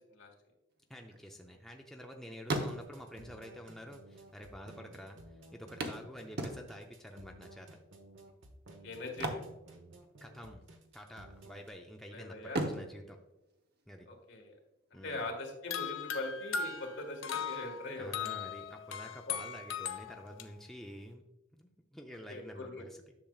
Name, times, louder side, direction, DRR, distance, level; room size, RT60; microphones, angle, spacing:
sound 1, 0.8-2.1 2.4-3.2 4.1-4.2 4.4-4.5 5.8-7.0 9.0-10.4 10.6-10.9 11.4-12.0 12.4-14.2 16.2-16.3 16.7-16.8, right 1 dB, 55° right, 0.9 m, -38 dB
voice 1, 0.9-7.8 10.2-10.7 10.9-13.2 13.9-14.1 14.9-15.2 17.9-21.3 21.5-23.0, equal, ahead, 1 dB, 0.5 m, -49 dB
sound 2, 2.7-11.7, right 1 dB, 80° right, 1.1 m, -55 dB
voice 2, 8.8-9.4 12.1-12.6 14.1-14.6 15.0-18.3 19.3-19.4 22.3-22.9, left 2 dB, 65° left, 1 dB, 1.6 m, -41 dB
sound 3, 15.7-20.4, left 7 dB, 85° left, 0.5 m, -38 dB
10.5 x 6.6 x 2.4 m, 0.89 s
head